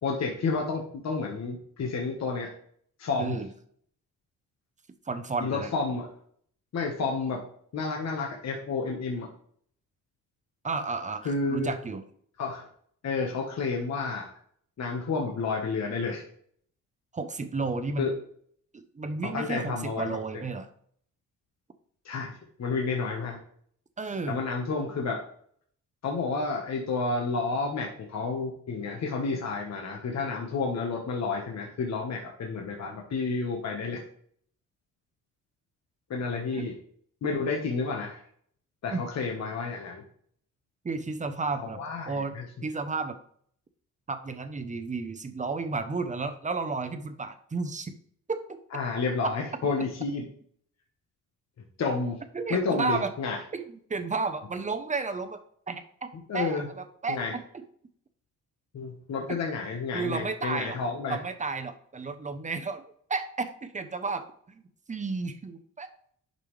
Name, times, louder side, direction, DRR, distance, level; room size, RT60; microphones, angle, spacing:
voice 1, 0.0-2.5 3.0-3.4 5.4-6.1 6.7-7.4 7.7-9.3 11.2-11.7 12.4-12.7 13.0-14.3 14.8-16.2 18.0-18.1 19.3-20.1 22.0-23.4 24.3-25.2 26.0-34.0 36.1-36.7 37.2-38.2 38.8-40.0 41.7-42.4 48.7-50.2 51.8-52.2 52.5-53.4 56.3-56.7 57.1-57.3 58.7-61.2, left 4 dB, 55° left, 0 dB, 1.3 m, -30 dB
voice 2, 3.2-3.5 5.1-5.7 10.6-12.0 17.1-18.1 18.7-20.7 24.0-24.4 36.5-36.6 38.9-39.0 40.8-43.2 44.1-47.9 48.3-48.6 52.3-53.1 53.5-57.6 59.3-59.4 59.9-60.8 61.1-62.8 63.1-64.6 64.9-66.1, right 4 dB, 25° right, 9 dB, 0.8 m, -33 dB
10.5 x 5.4 x 3.3 m, 0.62 s
cardioid pair, 120°, 32 cm